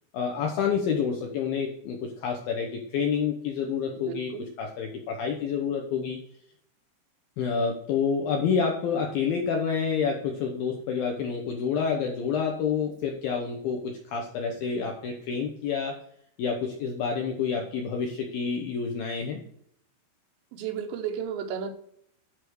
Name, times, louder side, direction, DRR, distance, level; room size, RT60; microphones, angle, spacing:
voice 1, 0.1-4.3 4.6-6.2 7.4-16.0 16.4-19.4, left 6 dB, 75° left, 2 dB, 2.1 m, -28 dB
voice 2, 4.1-4.5 20.5-21.7, right 8 dB, 75° right, 5 dB, 3.1 m, -33 dB
11.0 x 3.7 x 6.2 m, 0.67 s
omnidirectional pair, 5.4 m